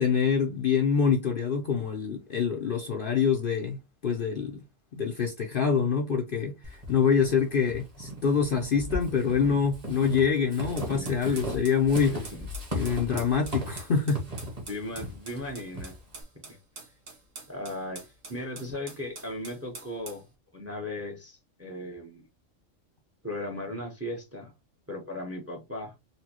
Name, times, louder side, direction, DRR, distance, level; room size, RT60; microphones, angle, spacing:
voice 1, 0.0-4.6 4.9-12.2 12.7-14.3, left 6 dB, 55° left, 0.7 m, -26 dB
Walk footsteps / Squeak, 6.6-16.2, left 1 dB, 30° right, 1.2 m, -37 dB
sound 1, 10.8-20.2, right 3 dB, 90° right, 1.7 m, -46 dB
voice 2, 10.9-11.5 12.1-12.5 14.7-16.0 16.5-16.6 17.5-18.0 18.3-20.3 20.5-22.3 23.2-24.5 24.9-25.9, left 1 dB, 15° right, 0.7 m, -37 dB
4.2 x 2.2 x 2.9 m
omnidirectional pair, 1.3 m